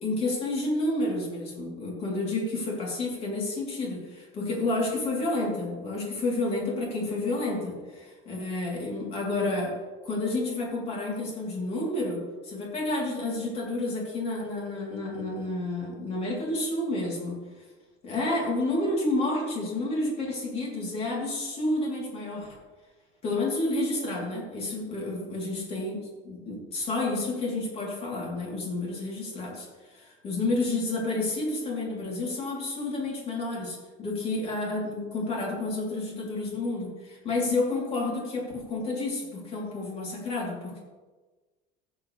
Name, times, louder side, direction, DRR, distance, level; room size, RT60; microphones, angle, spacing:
voice 1, 0.0-9.8 10.0-17.4 18.0-22.6 23.2-40.8, left 2 dB, 35° left, -3 dB, 3.3 m, -30 dB
14.5 x 7.3 x 3.3 m, 1.3 s
cardioid pair, 165°, 18 cm